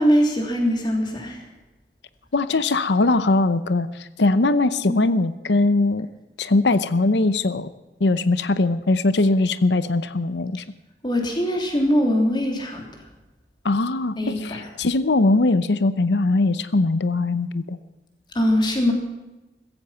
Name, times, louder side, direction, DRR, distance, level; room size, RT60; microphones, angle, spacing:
voice 1, 0.0-1.4 4.8-5.0 11.0-12.9 14.2-14.7 18.3-18.9, equal, 25° left, 1 dB, 3.3 m, -22 dB
voice 2, 2.3-6.1 6.4-7.7 8.0-10.6 13.6-17.8, left 2 dB, 80° left, 14 dB, 0.7 m, -21 dB
16.0 x 15.0 x 5.7 m, 1.1 s
head